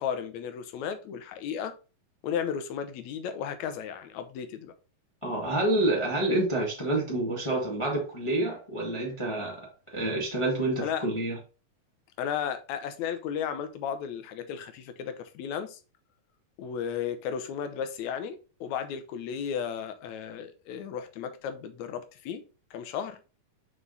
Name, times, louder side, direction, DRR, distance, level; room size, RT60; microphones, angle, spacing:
voice 1, 0.0-1.8 2.2-4.7 10.8-11.1 12.2-15.8 16.6-22.4 22.7-23.2, left 8 dB, 70° left, 1.9 m, -34 dB
voice 2, 5.2-11.4, right 2 dB, 45° left, 0.4 m, -28 dB
5.7 x 4.7 x 3.9 m
omnidirectional pair, 3.8 m